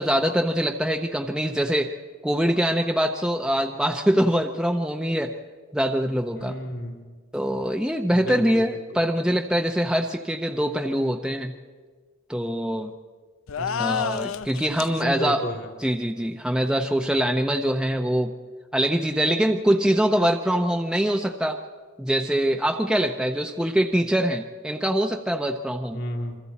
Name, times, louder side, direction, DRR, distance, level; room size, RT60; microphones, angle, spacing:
voice 1, 0.0-2.0 2.2-5.4 5.7-6.6 7.3-11.5 12.3-12.9 13.8-15.4 15.8-18.3 18.7-21.6 22.0-26.0, equal, 5° right, 3 dB, 0.6 m, -23 dB
voice 2, 6.4-7.1 8.1-8.8 13.6-14.2 15.0-15.7 25.9-26.4, equal, 50° left, 3 dB, 2.1 m, -32 dB
sound 1, 13.5-15.0, left 7 dB, 70° left, 0.5 m, -29 dB
27.5 x 23.5 x 4.2 m, 1.5 s
head